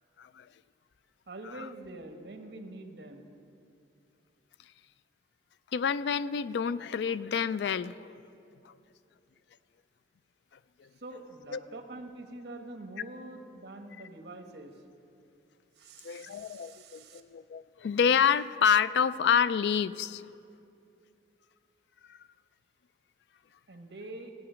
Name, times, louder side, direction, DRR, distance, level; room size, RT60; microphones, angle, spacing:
voice 1, 0.2-0.5 1.6-1.7 5.7-8.2 8.6-8.7 10.8-10.9 11.5-11.6 16.0-20.2 22.1-22.2, left 7 dB, 70° left, 16 dB, 0.3 m, -28 dB
voice 2, 1.3-3.3 11.0-14.8 15.8-17.2 23.7-24.3, right 2 dB, 65° right, 5 dB, 1.2 m, -45 dB
15.0 x 8.8 x 6.2 m, 2.6 s
head